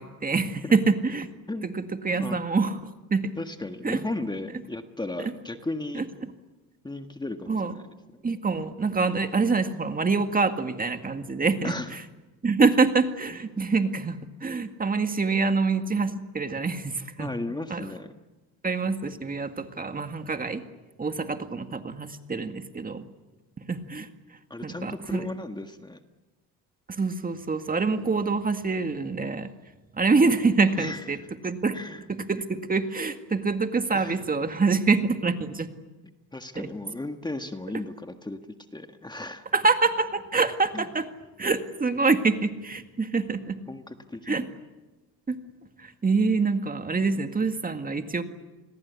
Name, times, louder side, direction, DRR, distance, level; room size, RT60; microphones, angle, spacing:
voice 1, 0.0-1.3 1.6-3.2 3.8-4.0 5.2-5.3 6.0-6.1 7.5-7.7 8.2-11.7 12.4-17.3 17.7-17.9 18.6-20.6 21.0-23.0 23.7-24.1 24.6-25.2 27.0-29.5 29.9-31.2 31.4-31.8 32.3-35.7 36.6-36.7 39.5-41.1 41.4-43.6 44.3-44.5 45.3-45.4 45.8-48.2, right 4 dB, 25° right, 8 dB, 2.0 m, -25 dB
voice 2, 3.4-6.1 6.8-7.9 8.1-8.2 11.6-12.0 17.2-18.1 24.5-26.0 30.8-31.3 31.7-32.0 33.9-34.2 36.3-38.4 38.7-39.5 40.7-40.9 43.7-44.4, left 2 dB, 10° left, 7 dB, 1.6 m, -35 dB
30.0 x 21.5 x 8.4 m, 1.1 s
cardioid pair, 105°, 35 cm